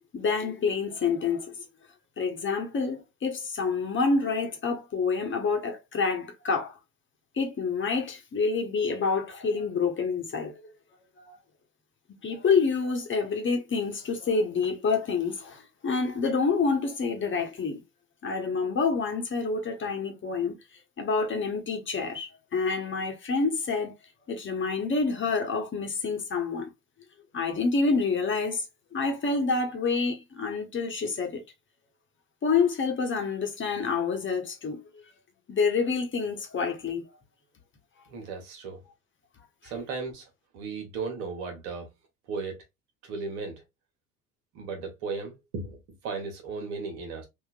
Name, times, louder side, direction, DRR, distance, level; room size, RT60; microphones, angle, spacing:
voice 1, 0.1-1.6 2.2-6.7 7.3-10.5 11.2-11.3 12.2-17.8 18.2-20.5 21.0-23.9 24.3-26.7 27.3-28.6 28.9-31.4 32.4-34.8 35.5-37.0 39.6-39.7, left 4 dB, 30° left, 1.0 m, -27 dB
voice 2, 38.1-38.8 39.6-40.3 40.5-41.9 42.3-42.6 43.0-43.6 44.5-45.8 46.0-47.3, right 4 dB, 60° right, 1.3 m, -35 dB
3.6 x 2.5 x 2.3 m
figure-of-eight pair, 65°, 41 cm